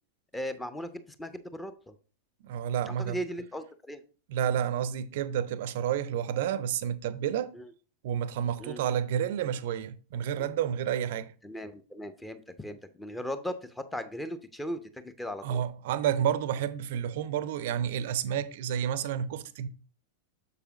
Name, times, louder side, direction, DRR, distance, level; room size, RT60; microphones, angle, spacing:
voice 1, 0.3-1.9 2.9-4.0 7.5-7.7 8.6-8.8 10.4-10.5 11.4-15.6, equal, 5° left, 0.7 m, -38 dB
voice 2, 2.4-3.2 4.3-7.5 8.0-11.3 15.4-19.7, right 9 dB, 55° right, 0.5 m, -30 dB
6.8 x 6.7 x 2.9 m
figure-of-eight pair, 90°, 0 cm